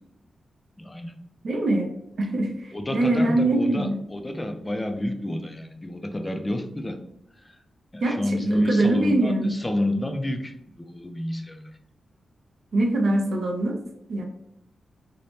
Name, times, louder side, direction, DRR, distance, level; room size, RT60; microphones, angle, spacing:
voice 1, 0.8-1.2 2.7-7.0 7.4-7.6 7.9-11.7, left 1 dB, 15° left, 6 dB, 0.3 m, -29 dB
voice 2, 1.4-1.9 2.2-4.0 8.0-9.5 12.7-13.8 14.1-14.2, right 2 dB, 60° right, 1 dB, 0.4 m, -23 dB
2.6 x 2.0 x 3.1 m, 0.74 s
wide cardioid pair, 135°, 0 cm